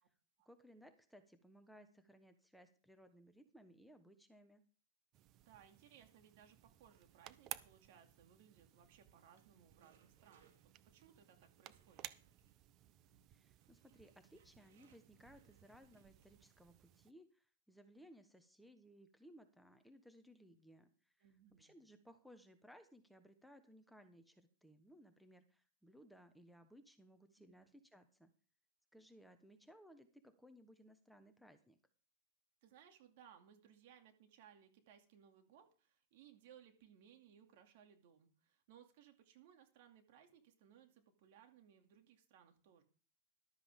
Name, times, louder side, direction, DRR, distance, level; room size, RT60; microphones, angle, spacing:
voice 1, 0.4-4.6 13.3-21.3 21.6-28.3 28.9-31.8, equal, ahead, 7 dB, 1.1 m, -62 dB
sound 1, 5.1-17.1, right 13 dB, 40° right, 0.7 m, -57 dB
voice 2, 5.4-10.6 10.9-12.1 21.2-21.7 27.4-27.7 32.6-42.8, right 9 dB, 60° right, 5 dB, 2.5 m, -64 dB
sound 2, 7.0-16.7, right 5 dB, 75° right, 3.0 m, -76 dB
14.0 x 12.0 x 3.7 m, 0.39 s
hypercardioid pair, 135°, 0 cm